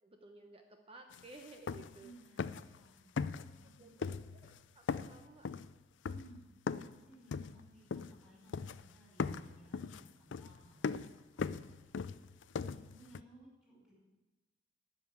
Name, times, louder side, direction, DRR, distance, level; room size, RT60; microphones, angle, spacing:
voice 1, 0.0-2.4 3.8-4.1 4.3-5.5, right 2 dB, 30° right, 4 dB, 0.9 m, -56 dB
sound 1, 1.1-1.2 1.5-2.1 2.4-2.8 3.2-3.7 4.0-4.6 4.9-7.0 7.3-8.3 8.5-8.9 9.2-13.2, left 5 dB, 85° left, 0.4 m, -39 dB
voice 2, 2.0-4.1 6.0-6.4 6.8-13.9, right 1 dB, 5° right, -8 dB, 5.1 m, -61 dB
12.5 x 6.5 x 9.3 m, 1.1 s
head